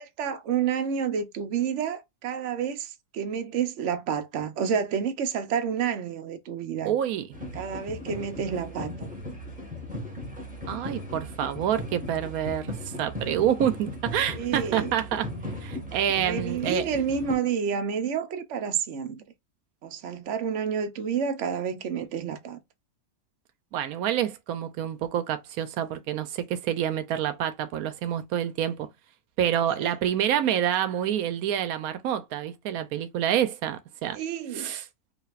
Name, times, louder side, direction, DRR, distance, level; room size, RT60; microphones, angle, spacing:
voice 1, 0.0-7.0 7.5-9.1 14.4-14.9 16.2-19.2 19.8-22.6 29.8-29.9 34.1-34.7, right 7 dB, 60° right, 1.0 m, -29 dB
voice 2, 6.8-7.3 10.7-12.7 13.0-15.3 15.6-16.9 23.7-28.9 29.4-34.2 34.5-34.8, right 10 dB, 90° right, 1.1 m, -27 dB
sound 1, 7.3-17.3, left 1 dB, 5° right, 1.2 m, -37 dB
5.0 x 2.6 x 2.4 m
omnidirectional pair, 1.5 m